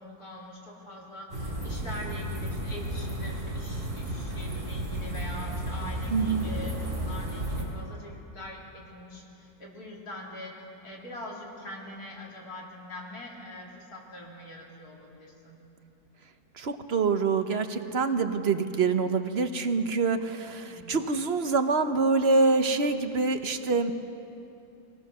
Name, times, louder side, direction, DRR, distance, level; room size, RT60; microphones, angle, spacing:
voice 1, 0.0-10.5 10.8-15.6 20.6-21.0, left 1 dB, 75° left, -3 dB, 3.9 m, -43 dB
sound 1, 1.3-7.6, right 1 dB, 30° right, 4.5 m, -33 dB
voice 2, 6.1-6.5 16.6-23.9, right 4 dB, 45° right, 8 dB, 1.1 m, -25 dB
23.5 x 17.5 x 6.7 m, 2.8 s
omnidirectional pair, 1.6 m